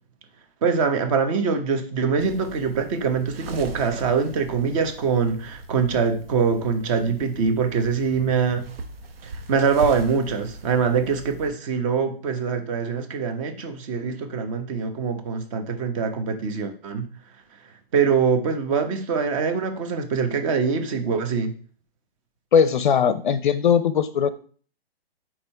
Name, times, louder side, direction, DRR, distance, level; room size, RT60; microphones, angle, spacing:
voice 1, 0.6-8.6 9.2-17.0 17.9-21.5, right 5 dB, 30° right, 7 dB, 1.0 m, -23 dB
sound 1, 2.2-11.5, right 2 dB, 65° right, 1.0 m, -39 dB
voice 2, 22.5-24.3, left 7 dB, 50° left, 13 dB, 0.5 m, -19 dB
4.4 x 4.3 x 5.5 m, 0.44 s
hypercardioid pair, 135°, 31 cm